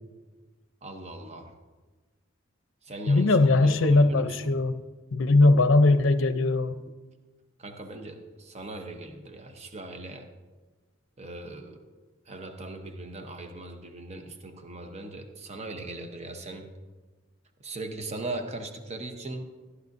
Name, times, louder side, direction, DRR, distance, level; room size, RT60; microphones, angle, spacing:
voice 1, 0.8-1.5 2.8-3.4 3.6-4.5 7.6-10.3 11.2-11.8 12.3-16.7 17.6-19.5, right 2 dB, 35° right, 6 dB, 0.8 m, -39 dB
voice 2, 3.1-4.7 5.1-6.7, left 2 dB, 70° left, 11 dB, 0.6 m, -20 dB
14.5 x 11.0 x 2.6 m, 1.3 s
head